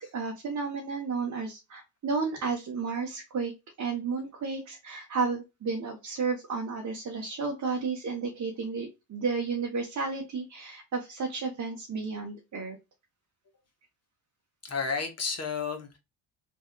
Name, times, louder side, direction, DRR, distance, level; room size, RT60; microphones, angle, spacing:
voice 1, 0.1-3.5 3.8-12.8, right 4 dB, 35° right, 0 dB, 1.1 m, -32 dB
voice 2, 14.6-16.0, left 5 dB, 30° left, 4 dB, 1.3 m, -32 dB
3.5 x 2.6 x 2.3 m, 0.24 s
supercardioid pair, 70°, 48 cm